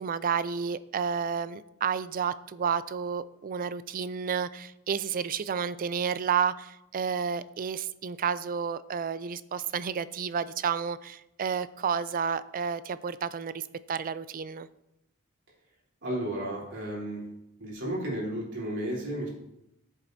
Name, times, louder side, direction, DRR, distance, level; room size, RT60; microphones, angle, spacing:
voice 1, 0.0-13.6 13.9-14.7, right 6 dB, 40° right, 15 dB, 0.4 m, -31 dB
voice 2, 16.0-17.2 17.6-19.3, right 1 dB, 55° right, -4 dB, 3.7 m, -33 dB
14.0 x 7.3 x 2.7 m, 0.85 s
head